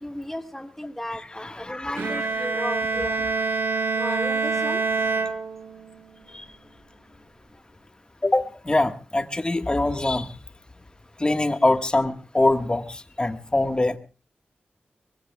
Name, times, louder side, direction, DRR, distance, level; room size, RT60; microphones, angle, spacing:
voice 1, 0.0-3.2 4.0-4.8, left 1 dB, 10° left, 1.8 m, -34 dB
voice 2, 1.4-2.2 4.0-4.2 6.3-6.4 8.2-10.3 11.2-14.0, left 2 dB, 25° left, 1.5 m, -24 dB
Bowed string instrument, 2.0-6.0, right 4 dB, 80° right, 1.8 m, -26 dB
24.0 x 21.5 x 2.3 m
wide cardioid pair, 75°, 4 cm